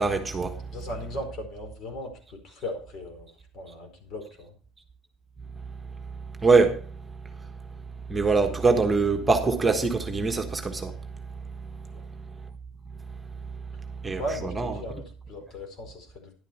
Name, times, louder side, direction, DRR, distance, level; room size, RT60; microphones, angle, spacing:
voice 1, 0.0-0.7 5.7-7.8 8.1-12.4 12.9-14.7, right 4 dB, 15° right, 1.4 m, -26 dB
voice 2, 0.7-3.3 3.5-4.5 14.2-16.3, left 1 dB, 55° left, 4.5 m, -37 dB
11.0 x 9.0 x 4.3 m
supercardioid pair, 110°, 0 cm